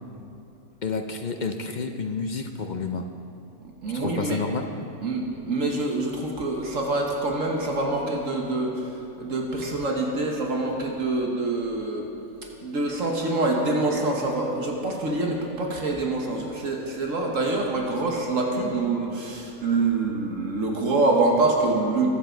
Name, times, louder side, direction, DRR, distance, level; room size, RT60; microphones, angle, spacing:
voice 1, 0.8-3.0 3.9-4.6, left 4 dB, 60° left, 5 dB, 0.4 m, -29 dB
voice 2, 3.8-4.4 5.0-12.1 12.6-22.1, right 2 dB, 60° right, 0 dB, 1.6 m, -25 dB
21.5 x 7.5 x 4.5 m, 2.8 s
omnidirectional pair, 1.5 m